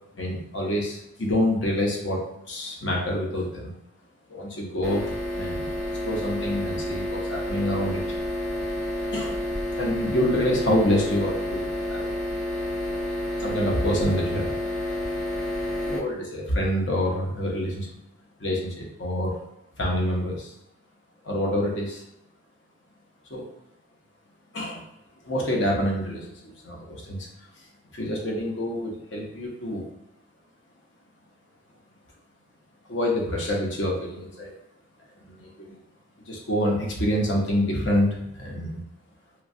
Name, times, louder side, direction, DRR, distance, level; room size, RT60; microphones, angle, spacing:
voice 1, 0.2-2.2 2.5-3.7 4.3-5.0 5.4-8.0 9.1-9.4 9.8-12.1 13.4-14.6 15.9-17.9 18.4-19.4 19.8-20.5 21.2-22.0 23.3-23.4 24.5-24.8 25.2-27.3 27.9-29.8 32.9-34.5 35.2-35.8 36.3-38.1 38.3-38.8, left 1 dB, 70° left, -1 dB, 0.7 m, -27 dB
sound 1, 4.8-16.0, left 1 dB, 5° left, 0.4 m, -30 dB
3.1 x 2.2 x 2.6 m, 0.85 s
head